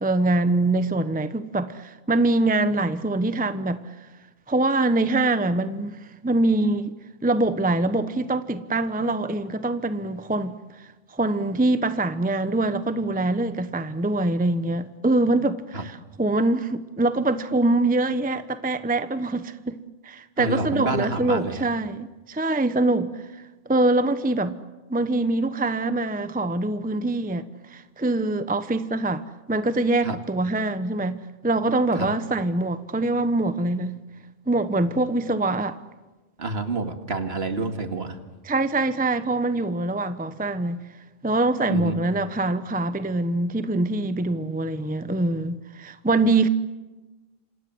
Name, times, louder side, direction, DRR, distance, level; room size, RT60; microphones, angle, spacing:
voice 1, 0.0-3.8 4.5-6.9 7.2-19.8 20.0-23.2 23.7-24.6 24.9-34.0 34.5-35.8 38.4-40.8 41.2-46.5, right 2 dB, 10° right, 0.7 m, -24 dB
voice 2, 20.4-21.6 30.0-30.2 32.0-32.1 36.4-38.2 41.7-41.9, right 3 dB, 55° right, 2.3 m, -28 dB
28.5 x 26.5 x 7.8 m
omnidirectional pair, 1.2 m